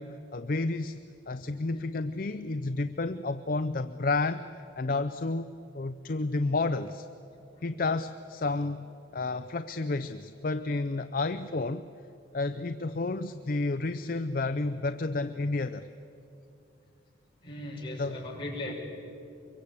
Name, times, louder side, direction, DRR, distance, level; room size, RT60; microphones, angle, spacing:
voice 1, 0.0-7.1 7.6-8.9 9.1-11.9 12.3-15.9 18.0-18.2 18.7-18.8, left 3 dB, 45° left, 11 dB, 0.5 m, -31 dB
voice 2, 17.4-18.7, left 1 dB, 25° left, -3 dB, 5.5 m, -37 dB
24.0 x 23.0 x 8.5 m, 2.7 s
head